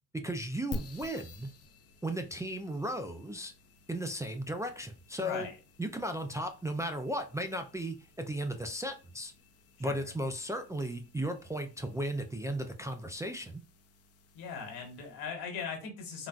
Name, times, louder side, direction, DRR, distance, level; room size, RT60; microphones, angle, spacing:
voice 1, 0.2-1.5 2.0-3.5 3.9-5.5 5.8-9.3 9.8-13.6, right 1 dB, 10° right, 0.3 m, -35 dB
sound 1, 0.7-15.4, left 2 dB, 40° left, 0.5 m, -51 dB
voice 2, 5.2-5.6 9.8-10.1 14.3-16.3, left 6 dB, 85° left, 1.4 m, -39 dB
3.7 x 2.2 x 2.4 m
cardioid pair, 85°, 37 cm